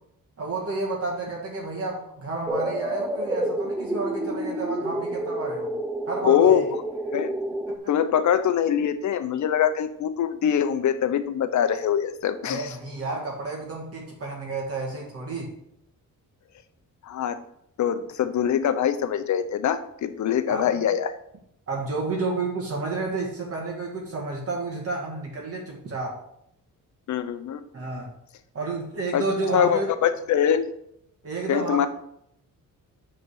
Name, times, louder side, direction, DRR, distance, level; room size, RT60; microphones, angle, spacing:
voice 1, 0.4-5.7 6.1-6.6 12.4-15.5 20.5-20.7 21.7-26.2 27.7-28.1 28.5-29.9 31.2-31.9, right 3 dB, 45° right, -2 dB, 1.7 m, -31 dB
sound 1, 2.5-7.8, right 1 dB, 5° right, 0.5 m, -29 dB
voice 2, 6.2-6.8 7.1-7.3 7.9-12.8 17.0-17.4 17.8-21.1 27.1-27.6 29.1-29.2 29.5-30.6 31.5-31.9, left 9 dB, 55° left, 11 dB, 0.7 m, -23 dB
8.4 x 3.9 x 6.4 m, 0.75 s
wide cardioid pair, 160°, 34 cm